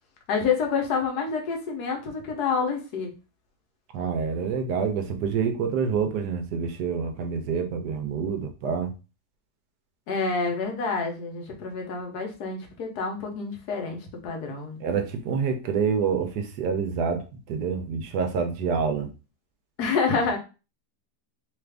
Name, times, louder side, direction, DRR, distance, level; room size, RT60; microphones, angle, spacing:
voice 1, 0.3-3.1 10.1-14.8 19.8-20.4, left 5 dB, 75° left, 2 dB, 1.3 m, -28 dB
voice 2, 3.9-8.9 14.8-19.1, right 6 dB, 75° right, 5 dB, 1.2 m, -27 dB
3.2 x 2.4 x 3.3 m, 0.31 s
omnidirectional pair, 1.8 m